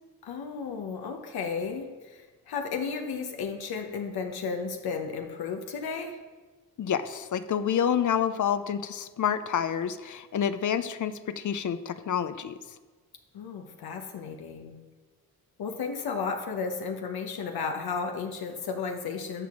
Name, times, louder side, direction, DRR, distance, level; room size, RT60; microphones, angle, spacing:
voice 1, 0.2-6.2 13.3-14.8 15.6-19.5, left 5 dB, 75° left, 4 dB, 1.0 m, -33 dB
voice 2, 6.8-12.5, left 8 dB, 50° left, 12 dB, 0.6 m, -28 dB
12.5 x 5.8 x 3.7 m, 1.3 s
cardioid pair, 60°, 38 cm